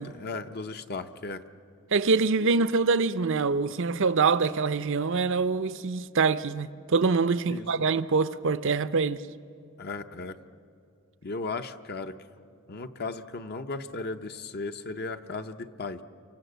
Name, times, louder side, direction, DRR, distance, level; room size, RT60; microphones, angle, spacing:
voice 1, 0.0-1.4 2.4-2.5 7.5-7.7 9.8-10.4 11.2-12.2 12.7-16.0, left 3 dB, 50° left, 0.8 m, -36 dB
voice 2, 1.9-9.2, right 4 dB, 60° right, 0.7 m, -25 dB
28.5 x 24.5 x 8.1 m
head